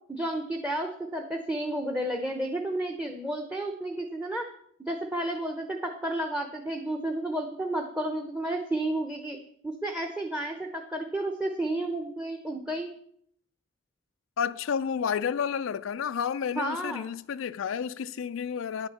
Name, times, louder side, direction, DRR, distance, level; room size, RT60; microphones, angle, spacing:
voice 1, 0.1-4.5 4.9-9.4 9.6-12.9 16.6-17.1, right 1 dB, 5° right, 0.8 m, -31 dB
voice 2, 14.4-18.9, left 7 dB, 75° left, 0.4 m, -30 dB
10.5 x 7.1 x 7.0 m
head